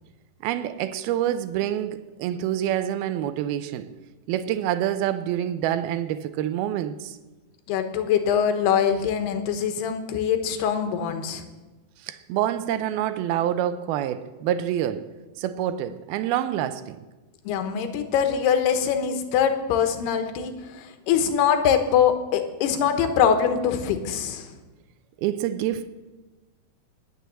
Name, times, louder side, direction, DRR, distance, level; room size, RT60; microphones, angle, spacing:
voice 1, 0.4-3.9 4.3-7.2 12.0-15.1 15.4-17.0 25.2-25.9, right 11 dB, 80° right, 2.4 m, -27 dB
voice 2, 7.7-11.4 17.5-24.5, left 8 dB, 80° left, 3.1 m, -23 dB
19.5 x 7.0 x 7.5 m
omnidirectional pair, 4.7 m